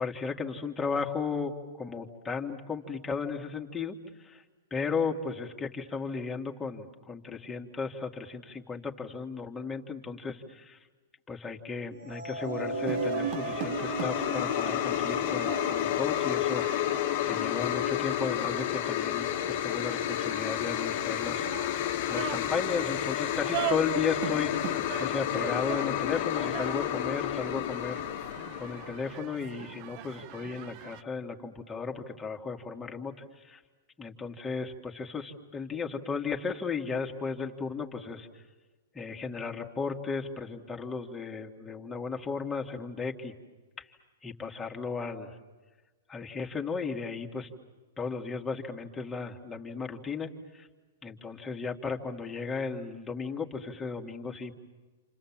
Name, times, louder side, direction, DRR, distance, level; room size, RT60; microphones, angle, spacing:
voice 1, 0.0-3.9 4.2-4.4 4.7-10.8 11.3-17.0 17.3-21.5 22.1-24.5 25.0-28.0 28.6-33.6 34.0-38.3 38.9-43.3 43.8-43.9 44.2-45.4 46.1-47.5 48.0-50.7 51.0-54.6, left 5 dB, 15° left, 1 dB, 2.4 m, -35 dB
sound 1, 12.1-18.3, right 3 dB, 80° right, 2.2 m, -37 dB
sound 2, 12.7-29.1, left 12 dB, 55° left, 1.4 m, -31 dB
sound 3, 12.9-31.0, right 14 dB, 45° right, 0.8 m, -41 dB
28.5 x 28.0 x 7.5 m, 1.3 s
hypercardioid pair, 115°, 0 cm